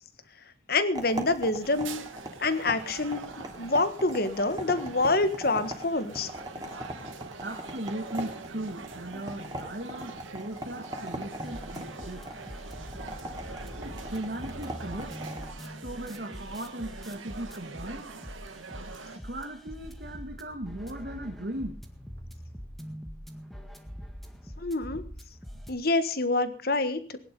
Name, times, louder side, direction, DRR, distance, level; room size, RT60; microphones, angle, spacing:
voice 1, 0.7-2.0 2.4-6.3 24.6-25.0 25.7-27.2, left 2 dB, 50° left, 11 dB, 1.5 m, -27 dB
sound 1, 0.9-15.5, right 1 dB, 20° right, 3.1 m, -41 dB
sound 2, 1.6-19.2, right 4 dB, 85° right, 1.8 m, -44 dB
voice 2, 7.4-12.2 13.8-15.2 15.7-18.1 19.1-21.8, right 1 dB, 55° right, 2 dB, 1.9 m, -38 dB
sound 3, 11.4-25.7, equal, ahead, 1.7 m, -44 dB
20.0 x 11.0 x 5.4 m, 0.41 s
head